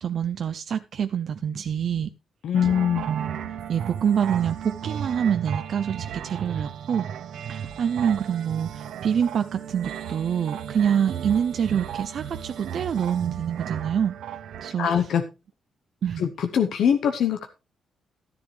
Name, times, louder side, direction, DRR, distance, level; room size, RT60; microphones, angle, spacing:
voice 1, 0.0-2.1 3.1-3.4 3.7-7.1 7.5-14.2 14.6-14.9 16.0-16.2, right 8 dB, 55° right, 10 dB, 0.5 m, -26 dB
voice 2, 2.4-3.0 14.8-15.2 16.2-17.5, left 8 dB, 70° left, 7 dB, 0.9 m, -22 dB
sound 1, 2.5-14.7, right 9 dB, 85° right, 0.9 m, -35 dB
13.0 x 10.5 x 3.2 m, 0.28 s
cardioid pair, 145°, 0 cm